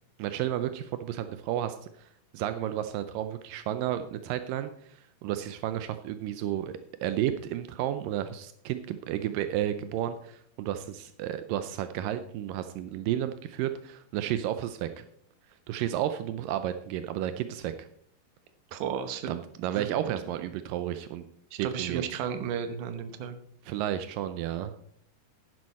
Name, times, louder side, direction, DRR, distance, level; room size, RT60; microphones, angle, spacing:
voice 1, 0.2-2.1 2.3-15.0 15.7-17.9 19.3-21.2 21.6-22.2 23.6-24.7, right 11 dB, 85° right, 10 dB, 2.0 m, -32 dB
voice 2, 18.7-19.3 19.8-19.9 21.5-23.4, right 8 dB, 70° right, 9 dB, 2.1 m, -33 dB
11.0 x 11.0 x 4.2 m, 0.64 s
omnidirectional pair, 4.7 m